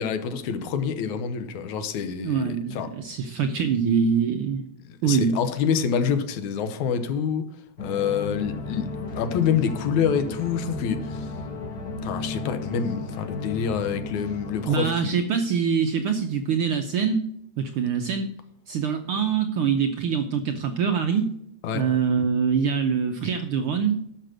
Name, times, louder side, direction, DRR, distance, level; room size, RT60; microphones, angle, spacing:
voice 1, 0.0-2.9 4.9-7.5 7.8-8.9 9.1-11.3 12.0-15.2 21.6-21.9, left 7 dB, 80° left, 2.4 m, -27 dB
voice 2, 2.2-4.7 5.0-5.4 14.7-17.2 17.6-18.3 18.7-21.3 21.7-24.0, right 6 dB, 80° right, 1.2 m, -24 dB
sound 1, 7.8-14.8, left 3 dB, 45° left, 1.5 m, -34 dB
11.5 x 6.7 x 6.2 m
omnidirectional pair, 3.4 m